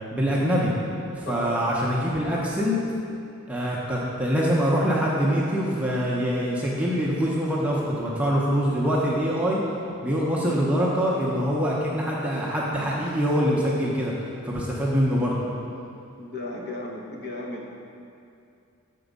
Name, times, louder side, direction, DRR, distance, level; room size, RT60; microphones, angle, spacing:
voice 1, 0.1-0.7 1.1-2.8 3.5-9.6 10.0-15.4, equal, 5° right, -5 dB, 0.6 m, -24 dB
voice 2, 1.3-1.6 16.2-17.7, left 2 dB, 45° left, -2 dB, 0.9 m, -34 dB
7.0 x 4.5 x 5.2 m, 2.6 s
head